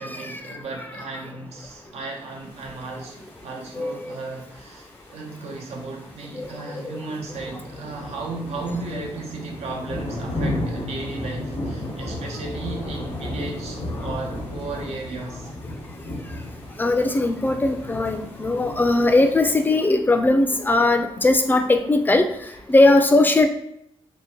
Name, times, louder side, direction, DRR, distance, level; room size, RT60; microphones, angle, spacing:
voice 1, 0.0-15.5 22.5-22.6, right 3 dB, 85° right, 0 dB, 0.6 m, -35 dB
sound 1, 2.5-19.7, left 1 dB, 90° left, 0.8 m, -34 dB
voice 2, 3.7-4.2 6.4-7.0 16.8-22.3 22.7-23.5, left 2 dB, 20° left, 6 dB, 0.3 m, -19 dB
2.7 x 2.1 x 2.9 m, 0.75 s
cardioid pair, 90°, 11 cm